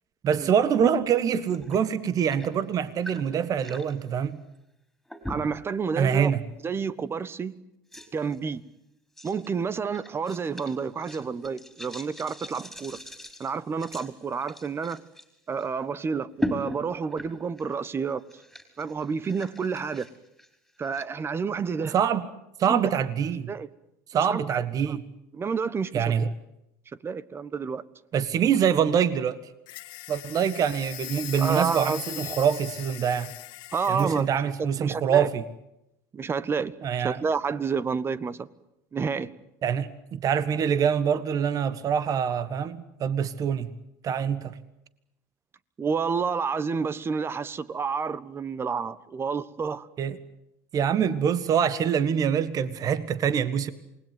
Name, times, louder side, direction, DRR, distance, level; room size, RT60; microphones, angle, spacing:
voice 1, 0.2-4.4 6.0-6.4 21.9-22.3 22.6-23.5 24.1-25.0 25.9-26.3 28.1-29.4 30.1-33.3 33.9-35.4 36.8-37.2 39.6-43.7 44.0-44.5 50.0-50.2 50.7-53.7, right 8 dB, 40° right, 1.6 m, -25 dB
sound 1, 1.5-1.8 2.1-3.9 5.1-5.7 6.2-6.4 7.2-7.3 7.9-8.4 9.2-9.5 9.9-15.2 15.6-15.7 16.4-17.8 18.1-21.0, equal, ahead, 4.8 m, -38 dB
voice 2, 5.3-6.3 6.6-7.5 8.1-8.6 9.2-13.0 13.4-15.0 15.5-18.2 18.8-20.1 20.8-21.9 22.6-22.9 23.5-23.7 24.3-24.6 24.9-25.0 25.3-26.1 27.0-27.8 31.4-32.2 33.7-34.5 34.8-35.3 36.1-38.5 38.9-39.3 45.8-49.9, right 5 dB, 25° right, 1.3 m, -29 dB
sound 2, 29.7-34.3, left 17 dB, 60° left, 1.9 m, -40 dB
28.0 x 20.5 x 9.4 m
supercardioid pair, 95°, 9 cm